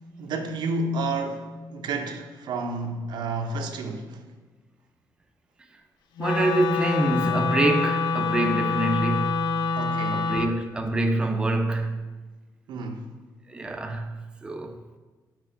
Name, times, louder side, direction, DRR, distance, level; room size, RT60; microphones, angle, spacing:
voice 1, 0.2-4.2 9.8-10.3 12.7-13.0, right 2 dB, 80° right, 0.6 m, -30 dB
Wind instrument woodwind instrument, 6.2-10.5, left 4 dB, 75° left, 0.4 m, -26 dB
voice 2, 6.2-9.5 10.1-12.1 13.5-14.8, right 2 dB, 10° right, 0.4 m, -26 dB
4.5 x 4.2 x 4.9 m
cardioid pair, 135°, 8 cm